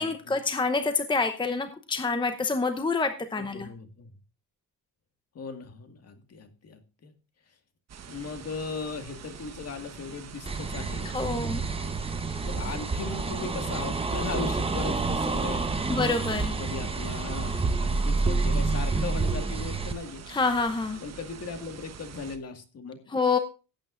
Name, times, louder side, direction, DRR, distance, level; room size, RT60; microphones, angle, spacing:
voice 1, 0.0-3.7 11.1-11.6 15.9-16.6 20.3-21.0 23.1-23.4, left 4 dB, 15° left, 9 dB, 0.8 m, -27 dB
voice 2, 3.5-4.1 5.3-7.1 8.1-11.1 11.8-11.9 12.4-16.0 16.6-20.2 21.0-23.0, left 4 dB, 45° left, 7 dB, 1.9 m, -38 dB
sound 1, 7.9-22.4, right 7 dB, 50° right, 1.3 m, -45 dB
sound 2, 10.5-19.9, right 3 dB, 15° right, 1.0 m, -28 dB
17.5 x 8.9 x 2.5 m, 0.32 s
cardioid pair, 120°, 34 cm